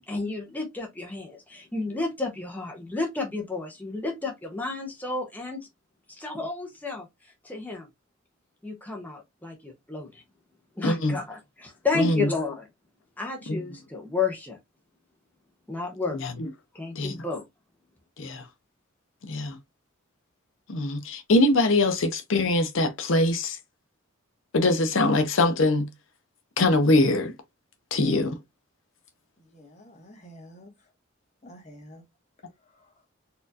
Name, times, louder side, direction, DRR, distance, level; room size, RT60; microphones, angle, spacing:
voice 1, 0.1-5.7 6.1-7.9 8.6-10.2 10.8-12.7 13.2-14.6 15.7-16.2 16.7-17.4, left 3 dB, 10° left, 0.6 m, -31 dB
voice 2, 10.8-11.1 11.9-12.2 13.5-13.6 16.2-16.5 17.0-17.2 18.2-18.4 19.2-19.6 20.7-23.6 24.5-25.9 26.6-27.3 27.9-28.3, left 2 dB, 70° left, 0.6 m, -23 dB
voice 3, 29.4-30.7 31.4-32.0 32.7-32.9, equal, 35° left, 1.1 m, -49 dB
4.2 x 2.4 x 2.6 m
head